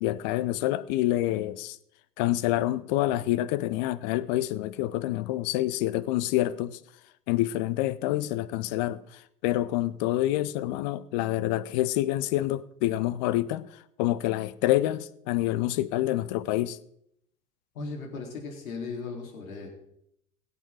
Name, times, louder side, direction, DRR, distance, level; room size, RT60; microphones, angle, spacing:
voice 1, 0.0-1.8 2.2-6.8 7.3-13.7 14.0-16.8, left 15 dB, 30° left, 0.5 m, -27 dB
voice 2, 17.7-19.7, left 4 dB, 60° left, 3.9 m, -37 dB
22.0 x 8.2 x 3.8 m
figure-of-eight pair, 90°, 46 cm